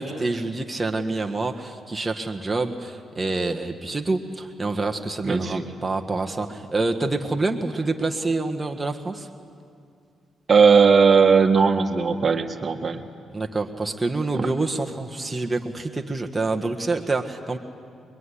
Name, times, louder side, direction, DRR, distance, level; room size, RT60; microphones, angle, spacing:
voice 1, 0.0-9.3 13.3-17.6, right 3 dB, 20° right, 2 dB, 1.6 m, -27 dB
voice 2, 5.2-5.6 10.5-13.0 14.3-14.5, right 5 dB, 40° right, 6 dB, 1.7 m, -18 dB
24.0 x 22.5 x 10.0 m, 2.3 s
cardioid pair, 75°, 0 cm